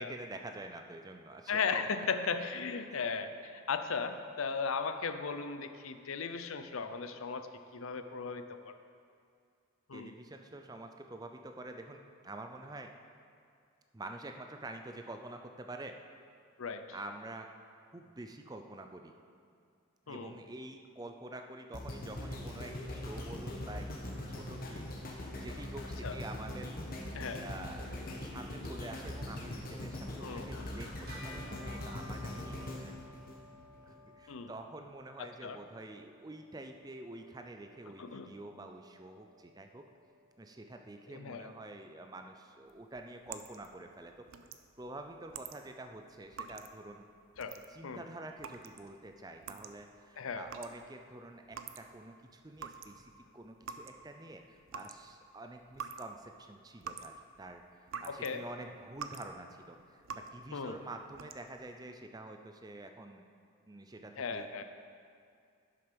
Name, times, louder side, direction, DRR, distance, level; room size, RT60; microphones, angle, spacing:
voice 1, 0.0-2.0 9.9-12.9 13.9-16.0 16.9-17.5 17.9-19.1 20.1-24.1 24.4-26.7 27.2-32.9 33.8-39.8 40.4-44.3 44.8-47.0 47.7-63.2 63.7-64.6, right 2 dB, 20° right, 5 dB, 0.5 m, -47 dB
voice 2, 1.5-8.7 9.9-10.1 16.6-16.8 20.1-20.4 26.0-26.2 27.1-27.4 30.2-30.7 34.3-34.5 35.2-35.6 38.0-38.3 41.1-41.5 47.4-47.5 47.8-48.0 50.2-50.5 58.1-58.4 60.5-60.8 64.2-64.6, left 5 dB, 75° left, 9 dB, 0.6 m, -37 dB
sound 1, 21.7-33.9 34.5-34.6, left 1 dB, 40° left, 1.3 m, -42 dB
Bell, 31.1-40.8, left 1 dB, 45° right, 1.8 m, -56 dB
sound 2, 42.7-52.2 52.4-58.3 58.7-59.4 59.6-60.5 61.0-61.7, right 6 dB, 70° right, 0.5 m, -47 dB
11.5 x 6.7 x 5.2 m, 2.3 s
head